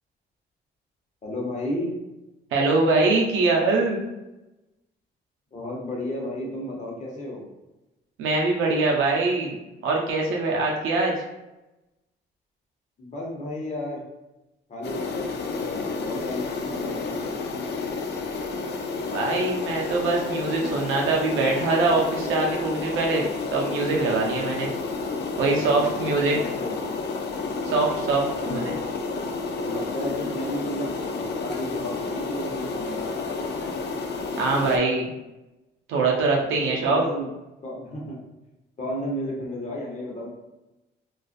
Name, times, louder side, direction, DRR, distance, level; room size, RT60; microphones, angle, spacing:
voice 1, 1.2-1.9 5.5-7.4 13.0-14.0 14.7-17.4 25.4-26.8 28.2-28.8 29.6-33.1 36.7-37.3 37.6-38.2 38.8-40.3, left 1 dB, 35° left, -2 dB, 0.8 m, -33 dB
voice 2, 2.5-4.0 8.2-9.6 9.8-11.1 19.1-24.7 25.4-26.3 27.7-28.7 34.4-35.1 35.9-37.0, right 3 dB, 85° right, -1 dB, 0.5 m, -23 dB
sound 1, 14.8-34.8, left 4 dB, 60° left, 0.4 m, -30 dB
2.4 x 2.3 x 2.4 m, 0.99 s
cardioid pair, 90°, 20 cm